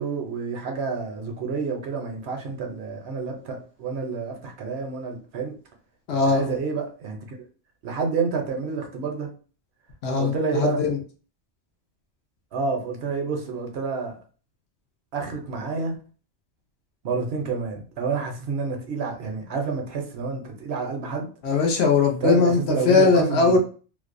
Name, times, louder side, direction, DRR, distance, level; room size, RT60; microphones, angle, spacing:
voice 1, 0.0-5.5 6.3-7.2 7.8-9.3 10.2-10.8 12.5-14.1 15.1-16.0 17.0-21.3 22.2-23.6, right 5 dB, 70° right, 2 dB, 0.8 m, -29 dB
voice 2, 6.1-6.5 10.0-11.0 21.4-23.6, left 4 dB, 70° left, 2 dB, 0.9 m, -20 dB
2.5 x 2.0 x 2.4 m, 0.39 s
omnidirectional pair, 1.2 m